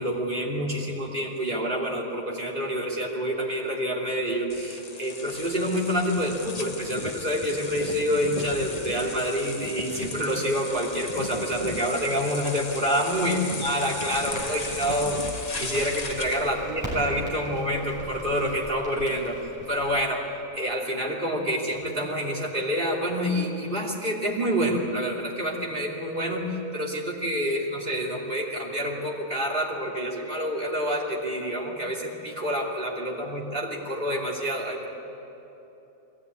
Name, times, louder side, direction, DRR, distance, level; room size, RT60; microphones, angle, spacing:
voice 1, 0.0-19.4 19.7-20.3 20.5-34.9, equal, 35° right, -3 dB, 3.2 m, -27 dB
sound 1, 4.5-16.5, left 3 dB, 30° left, 1.1 m, -36 dB
Crackle, 14.3-20.0, equal, 10° right, 7.5 m, -40 dB
21.0 x 17.0 x 9.6 m, 3.0 s
omnidirectional pair, 1.5 m